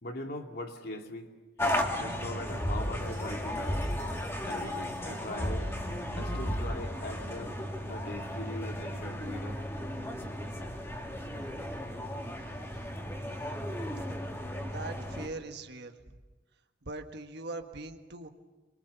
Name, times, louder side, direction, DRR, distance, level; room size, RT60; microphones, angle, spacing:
voice 1, 0.0-1.3 2.0-3.9 4.4-5.7 6.2-7.6 7.8-9.6, left 1 dB, 60° left, 3 dB, 2.6 m, -41 dB
sound 1, 1.6-15.3, equal, 15° left, 2.7 m, -34 dB
voice 2, 13.1-13.6 14.6-16.0 16.8-18.3, right 2 dB, 65° right, 5 dB, 1.6 m, -42 dB
27.5 x 23.5 x 7.0 m, 1.2 s
head